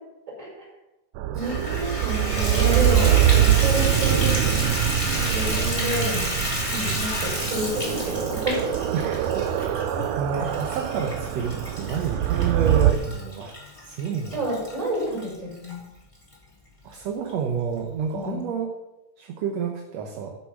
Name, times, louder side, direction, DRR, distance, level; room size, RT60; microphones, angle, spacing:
sound 1, 1.2-12.9, right 11 dB, 80° right, 2.1 m, -23 dB
voice 1, 1.3-4.3 5.1-6.4 6.7-8.6 9.9-10.1 14.3-15.8 18.1-18.4, right 1 dB, 20° right, -5 dB, 5.5 m, -29 dB
Water tap faucet / Bathtub (filling or washing), 1.4-15.7 16.3-16.4 16.9-17.0 17.3-17.4, left 1 dB, 10° left, 2.9 m, -31 dB
voice 2, 8.9-13.6 13.8-14.4 16.8-18.7 19.2-20.3, right 6 dB, 65° right, 3 dB, 1.9 m, -29 dB
13.0 x 6.8 x 6.0 m, 0.98 s
omnidirectional pair, 3.7 m